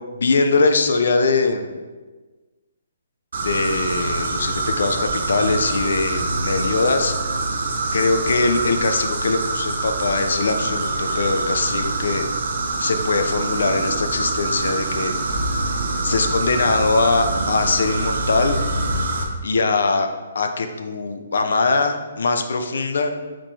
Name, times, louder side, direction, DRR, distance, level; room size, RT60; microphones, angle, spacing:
voice 1, 0.2-1.8 3.4-7.1 7.9-12.2 12.8-15.1 16.0-18.6 19.4-23.1, left 3 dB, 70° left, 6 dB, 0.5 m, -21 dB
sound 1, 3.3-19.2, right 2 dB, 60° right, 0.6 m, -25 dB
5.0 x 3.7 x 2.7 m, 1.3 s
hypercardioid pair, 170°, 0 cm